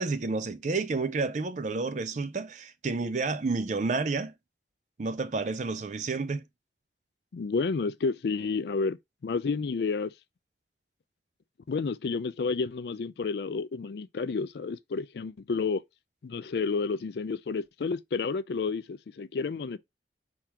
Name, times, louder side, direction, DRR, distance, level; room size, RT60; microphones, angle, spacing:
voice 1, 0.0-4.3 5.0-6.4, right 3 dB, 40° right, 0.4 m, -30 dB
voice 2, 7.3-10.1 11.7-15.8 16.2-19.8, left 4 dB, 65° left, 0.4 m, -30 dB
4.6 x 3.8 x 2.8 m
head